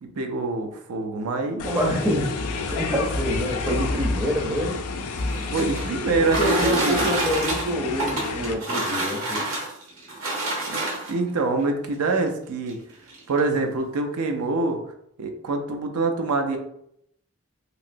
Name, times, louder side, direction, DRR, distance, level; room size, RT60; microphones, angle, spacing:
voice 1, 0.0-1.7 5.5-7.1 10.7-12.8 13.3-14.8 15.2-16.6, right 3 dB, 85° right, 5 dB, 0.5 m, -25 dB
sound 1, 1.6-8.5, left 3 dB, 90° left, 0.4 m, -30 dB
voice 2, 1.6-2.3 2.7-4.8 6.2-9.4, equal, 10° right, -1 dB, 0.5 m, -26 dB
sound 2, 5.1-11.3 12.2-12.3 12.7-12.8 13.1-13.5, right 2 dB, 65° right, 1.2 m, -28 dB
3.0 x 2.8 x 2.5 m, 0.73 s
head